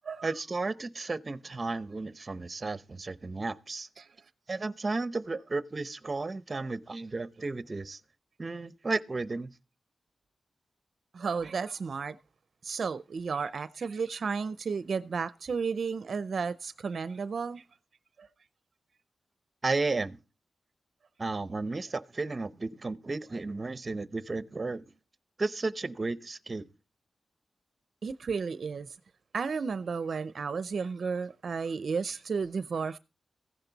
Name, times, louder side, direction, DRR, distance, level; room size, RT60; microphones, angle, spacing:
voice 1, 0.2-3.9 4.5-8.0 8.4-9.5 19.6-20.2 21.2-24.8 25.4-26.6, right 3 dB, 35° right, 0.7 m, -33 dB
voice 2, 11.1-12.2 12.6-17.6 18.2-18.3 28.0-29.0 29.3-33.0, right 5 dB, 65° right, 0.5 m, -33 dB
15.0 x 10.5 x 4.0 m
wide cardioid pair, 100°, 0 cm